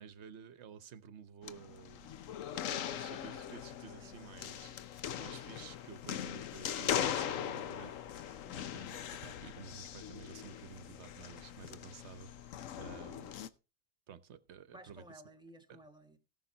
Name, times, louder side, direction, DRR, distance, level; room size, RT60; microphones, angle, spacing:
voice 1, 0.0-2.2 2.5-7.9 8.7-13.4 14.1-15.0, right 7 dB, 60° right, 1.1 m, -52 dB
sound 1, 1.4-13.5, left 10 dB, 80° left, 1.1 m, -40 dB
voice 2, 14.7-16.2, equal, 5° right, 1.6 m, -56 dB
18.0 x 6.3 x 3.9 m
omnidirectional pair, 1.4 m